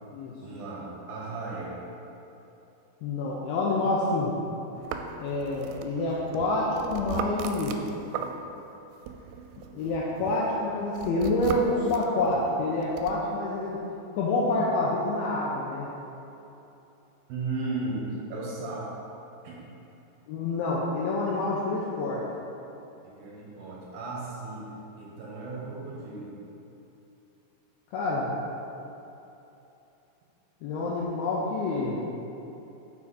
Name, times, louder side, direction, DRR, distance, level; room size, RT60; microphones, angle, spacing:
voice 1, 0.4-1.7 17.3-18.9 19.4-19.7 23.0-24.7 25.0-26.4, right 3 dB, 75° right, -4 dB, 3.1 m, -35 dB
voice 2, 3.0-4.4 5.2-7.8 9.7-13.8 14.1-15.9 20.3-22.2 27.9-28.3 30.6-32.0, left 2 dB, 85° left, -4 dB, 2.2 m, -27 dB
sound 1, 4.8-8.7 9.1-13.2, right 7 dB, 90° right, 2.8 m, -38 dB
7.3 x 5.8 x 4.1 m, 3.0 s
omnidirectional pair, 5.1 m